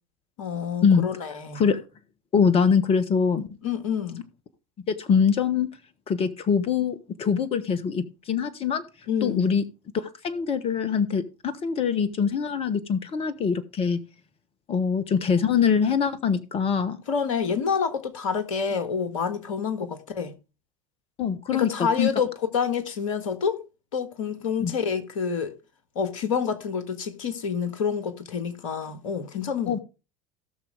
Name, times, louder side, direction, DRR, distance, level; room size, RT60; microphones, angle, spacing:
voice 1, 0.4-1.6 3.6-4.2 9.1-9.5 17.1-20.3 21.5-22.3 22.5-23.6 23.9-25.5 25.9-29.8, left 6 dB, 65° left, 1.7 m, -28 dB
voice 2, 2.3-3.5 4.9-5.7 6.1-8.8 9.2-9.6 9.9-14.0 14.7-17.0 21.2-22.1 24.6-24.7 29.7-29.8, left 6 dB, 30° left, 1.3 m, -23 dB
17.5 x 6.3 x 3.4 m
figure-of-eight pair, 70°, 18 cm